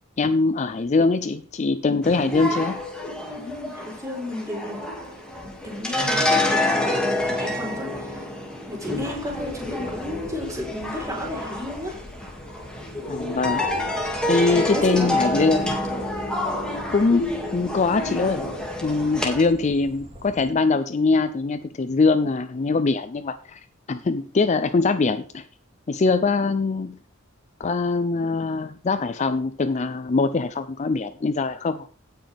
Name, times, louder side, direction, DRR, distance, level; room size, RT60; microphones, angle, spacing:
voice 1, 0.2-2.8 13.1-13.6 14.3-15.8 16.9-18.5 18.8-23.6 23.9-25.4 25.9-27.0 27.6-31.9, left 3 dB, 35° left, 12 dB, 0.4 m, -22 dB
sound 1, 2.0-19.4, left 1 dB, 5° left, 2.1 m, -28 dB
voice 2, 3.4-4.8 5.4-8.2 8.7-12.0 14.4-15.1, left 1 dB, 15° right, -2 dB, 3.9 m, -32 dB
sound 2, 8.9-20.5, left 1 dB, 30° right, 2.6 m, -44 dB
17.0 x 6.4 x 3.4 m, 0.41 s
head